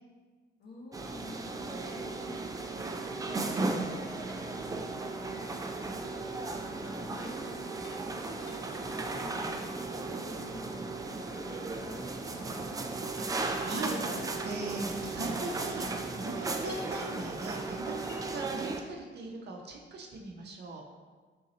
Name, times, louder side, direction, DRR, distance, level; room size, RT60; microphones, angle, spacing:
voice 1, 0.6-2.5 3.2-5.5 5.8-8.2 8.9-12.5, left 1 dB, 55° left, -4 dB, 1.2 m, -50 dB
sound 1, 0.9-18.8, right 3 dB, 20° right, 0.3 m, -36 dB
sound 2, 3.9-5.6 5.8-6.1 6.4-7.3 7.8-10.1 11.3-11.4 14.4-17.3 18.0-18.3, left 2 dB, 80° left, 0.8 m, -56 dB
voice 2, 13.2-20.8, right 2 dB, 55° right, 0 dB, 0.7 m, -39 dB
3.8 x 2.7 x 4.1 m, 1.4 s
cardioid pair, 90°, 20 cm